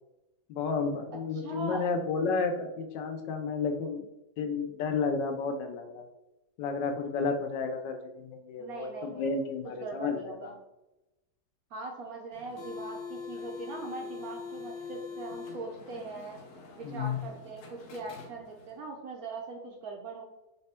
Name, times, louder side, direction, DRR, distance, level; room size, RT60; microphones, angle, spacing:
voice 1, 0.5-4.0 4.4-6.1 6.6-10.5 16.8-17.2, left 4 dB, 80° left, 5 dB, 1.2 m, -32 dB
voice 2, 1.4-1.9 8.6-9.4 9.8-10.5 11.7-16.4 16.7-20.2, right 3 dB, 65° right, 1 dB, 0.9 m, -41 dB
sound 1, 12.3-18.8, left 5 dB, 60° left, 0.9 m, -43 dB
4.2 x 2.2 x 4.2 m, 0.95 s
omnidirectional pair, 2.0 m